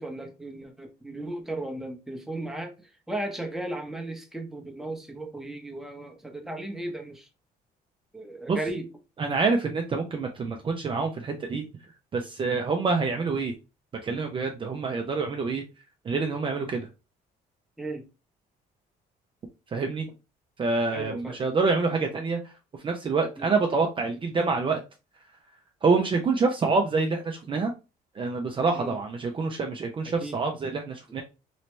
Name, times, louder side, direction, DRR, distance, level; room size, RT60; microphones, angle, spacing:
voice 1, 0.0-2.7 3.1-7.3 8.1-8.9 17.8-18.1 20.9-21.4 23.4-23.5 28.7-29.0 30.2-30.4, right 1 dB, ahead, 0.9 m, -35 dB
voice 2, 9.2-11.6 12.1-13.5 14.0-15.6 16.0-16.9 19.7-20.1 20.6-22.5 22.8-24.8 25.8-27.7 28.2-31.2, right 4 dB, 30° right, 0.5 m, -26 dB
3.1 x 2.8 x 3.2 m
cardioid pair, 110°, 17 cm